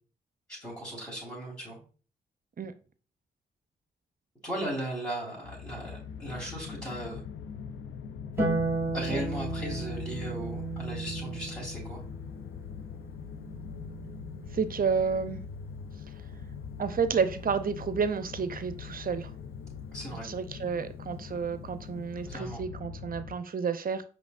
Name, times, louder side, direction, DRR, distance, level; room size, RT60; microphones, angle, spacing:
voice 1, 0.5-1.8 4.4-7.3 8.9-12.0 19.9-20.2 22.2-22.6, right 1 dB, 15° left, -7 dB, 2.2 m, -37 dB
sound 1, 5.4-23.4, left 6 dB, 75° left, 0.4 m, -42 dB
Harp, 8.4-14.9 16.5-17.5, right 3 dB, 10° right, 2.1 m, -35 dB
voice 2, 14.5-15.4 16.8-19.3 20.2-24.0, right 6 dB, 45° right, 11 dB, 0.6 m, -30 dB
5.1 x 3.4 x 2.5 m, 0.37 s
supercardioid pair, 45°, 20 cm